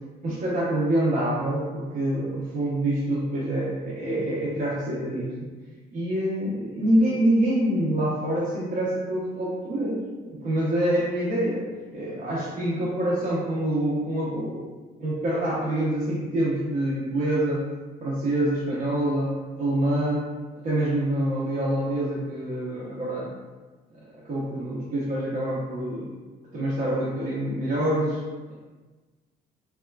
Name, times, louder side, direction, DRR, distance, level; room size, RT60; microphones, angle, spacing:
voice 1, 0.2-5.5 5.9-11.6 11.9-14.7 15.0-17.6 18.0-20.2 20.6-23.3 23.9-26.1 26.5-28.2 28.5-28.6, right 1 dB, 50° right, -8 dB, 0.7 m, -26 dB
2.9 x 2.3 x 2.2 m, 1.3 s
cardioid pair, 110°, 17 cm